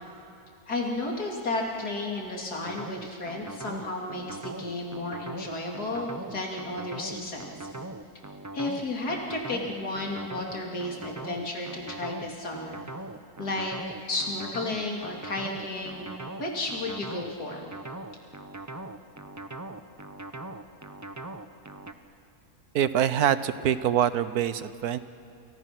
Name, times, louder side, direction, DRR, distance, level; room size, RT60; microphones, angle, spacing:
voice 1, 0.7-7.5 8.5-12.8 13.4-16.1 16.4-17.7, left 2 dB, 80° left, -1 dB, 3.5 m, -33 dB
sound 1, 2.6-21.9, right 2 dB, 15° right, 0.6 m, -40 dB
voice 2, 22.7-25.0, right 10 dB, 75° right, 13 dB, 1.4 m, -25 dB
29.0 x 28.5 x 6.1 m, 2.5 s
omnidirectional pair, 1.6 m